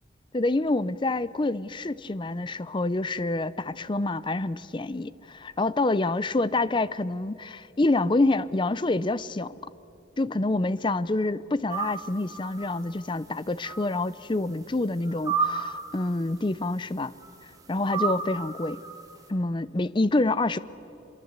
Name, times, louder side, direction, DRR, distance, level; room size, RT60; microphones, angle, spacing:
voice 1, 0.3-9.5 10.2-17.1 17.7-18.8 19.3-20.6, left 2 dB, 25° left, 17 dB, 0.5 m, -27 dB
sound 1, 11.7-12.1 12.3-13.0 13.6-13.9 14.5-14.6 15.0-15.9 17.2-17.3 17.9-19.1, right 5 dB, 20° right, 2.5 m, -31 dB
25.5 x 22.5 x 8.1 m, 2.9 s
head